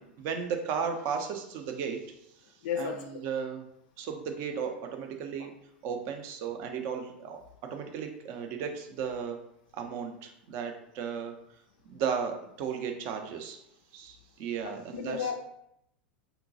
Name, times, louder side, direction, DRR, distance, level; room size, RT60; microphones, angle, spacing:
voice 1, 0.2-2.0 2.8-3.6 4.0-5.5 5.8-9.4 9.7-11.4 11.9-13.6 13.9-15.3, right 6 dB, 45° right, 4 dB, 0.5 m, -35 dB
voice 2, 2.6-3.0 14.6-15.4, left 7 dB, 55° left, 3 dB, 0.3 m, -33 dB
3.9 x 2.2 x 2.6 m, 0.77 s
figure-of-eight pair, 90°, 6 cm